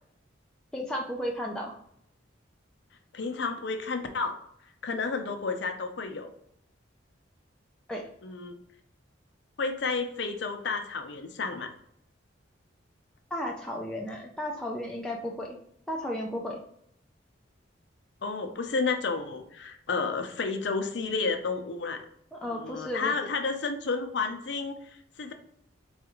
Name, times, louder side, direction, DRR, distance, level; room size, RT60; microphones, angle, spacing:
voice 1, 0.7-1.7 7.9-8.0 13.3-15.6 15.9-16.6 22.3-23.3, left 1 dB, 5° left, -2 dB, 0.3 m, -34 dB
voice 2, 3.1-4.4 4.8-6.3 8.2-8.6 9.6-11.7 18.2-22.0 22.4-25.3, left 4 dB, 60° left, 6 dB, 0.5 m, -31 dB
4.1 x 2.4 x 3.0 m, 0.72 s
head